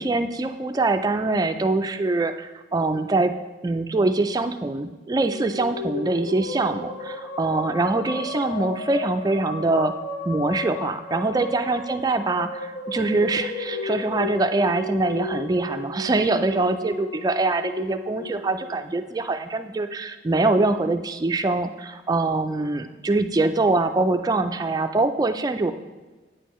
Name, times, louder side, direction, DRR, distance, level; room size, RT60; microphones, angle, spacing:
voice 1, 0.0-3.4 3.6-9.9 10.3-25.7, right 2 dB, 20° right, 8 dB, 0.3 m, -24 dB
sound 1, 5.0-19.5, left 3 dB, 60° left, 0.9 m, -34 dB
9.1 x 6.5 x 3.0 m, 1.2 s
head